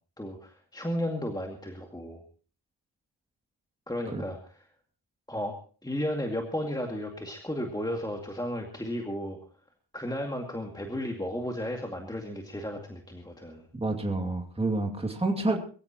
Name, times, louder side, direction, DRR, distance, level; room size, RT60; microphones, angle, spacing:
voice 1, 0.2-2.2 3.9-4.4 5.3-5.5 5.8-9.4 9.9-13.6, left 1 dB, 10° left, 2 dB, 2.2 m, -34 dB
voice 2, 13.7-15.6, right 2 dB, 10° right, 2 dB, 2.4 m, -28 dB
22.5 x 15.0 x 3.0 m, 0.39 s
wide cardioid pair, 105°, 47 cm